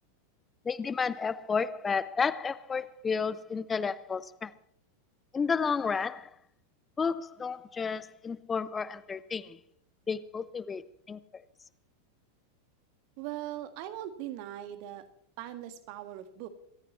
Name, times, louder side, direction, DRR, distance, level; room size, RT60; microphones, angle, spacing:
voice 1, 0.6-4.5 5.3-6.3 7.0-9.6 10.1-11.4, left 5 dB, 15° left, 17 dB, 0.8 m, -32 dB
voice 2, 13.2-15.0 15.4-16.5, right 12 dB, 45° right, 10 dB, 1.7 m, -40 dB
27.0 x 14.0 x 3.1 m, 0.65 s
figure-of-eight pair, 90°, 0 cm